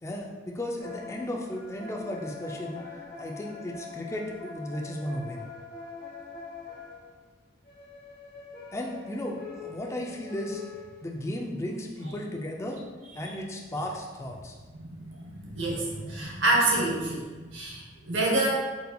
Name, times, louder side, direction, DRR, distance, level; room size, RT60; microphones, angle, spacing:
voice 1, 0.0-2.9 3.2-5.5 8.7-10.6 11.0-12.8 13.1-14.6, left 1 dB, 15° left, 0 dB, 0.3 m, -35 dB
sound 1, 0.8-7.1 7.6-11.2, left 4 dB, 50° left, 0.9 m, -43 dB
voice 2, 14.8-18.5, right 2 dB, 85° right, -3 dB, 0.8 m, -28 dB
4.1 x 2.7 x 2.2 m, 1.3 s
head